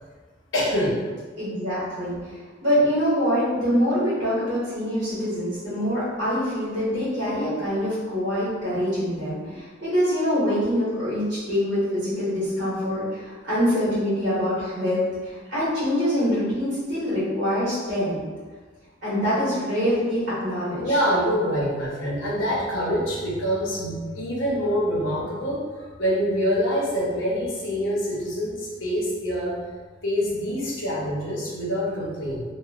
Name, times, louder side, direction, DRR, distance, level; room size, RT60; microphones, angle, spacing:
voice 1, 0.5-1.0 9.5-9.6 20.8-29.5 30.0-32.4, equal, 75° left, -5 dB, 0.7 m, -25 dB
voice 2, 1.4-2.1 2.6-18.2 19.0-21.0, equal, 60° right, -12 dB, 1.2 m, -24 dB
3.0 x 2.1 x 2.4 m, 1.4 s
head